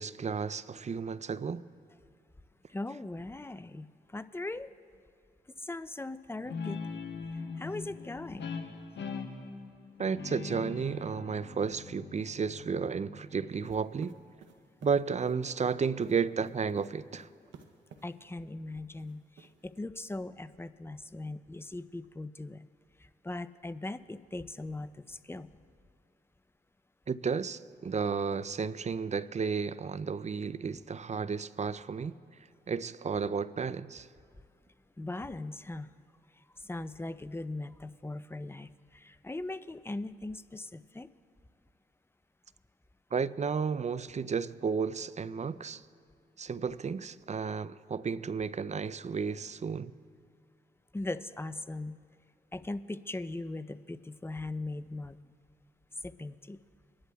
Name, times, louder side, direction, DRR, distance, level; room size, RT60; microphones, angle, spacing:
voice 1, 0.0-1.7 10.0-14.2 14.8-17.3 27.1-32.2 32.7-34.1 43.1-45.8 46.4-49.9, right 5 dB, 40° right, 0.4 m, -33 dB
voice 2, 2.7-4.7 5.6-6.8 7.3-8.6 18.0-22.7 23.0-25.5 35.0-35.9 36.5-41.1 50.9-52.0 52.5-55.2 56.0-56.6, left 2 dB, 15° left, 0.5 m, -39 dB
Guitar, 6.4-13.6, left 4 dB, 75° left, 1.1 m, -41 dB
sound 1, 13.6-18.1 19.0-19.8, right 6 dB, 85° right, 0.7 m, -53 dB
25.0 x 11.0 x 2.3 m
supercardioid pair, 45°, 19 cm